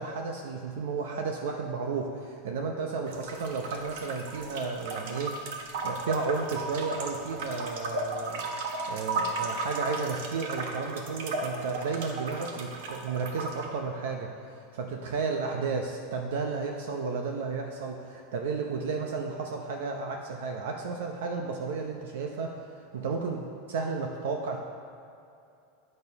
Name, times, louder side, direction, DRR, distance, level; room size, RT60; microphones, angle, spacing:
voice 1, 0.0-5.4 5.8-22.6 22.9-24.6, right 4 dB, 85° right, 2 dB, 0.7 m, -33 dB
sound 1, 3.1-13.7, right 3 dB, 70° right, 1.2 m, -35 dB
8.9 x 6.5 x 5.3 m, 2.6 s
supercardioid pair, 160°, 0 cm